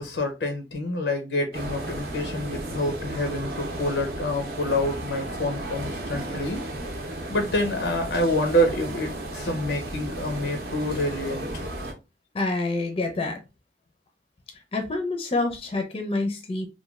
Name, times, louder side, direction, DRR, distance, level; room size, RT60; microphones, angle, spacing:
voice 1, 0.0-6.6 7.3-11.5, left 1 dB, 90° left, 0.5 m, -27 dB
sound 1, 1.5-11.9, right 1 dB, 60° right, 0.6 m, -34 dB
voice 2, 12.3-13.4 14.7-16.7, left 2 dB, 30° left, 0.4 m, -27 dB
3.0 x 2.2 x 2.3 m
head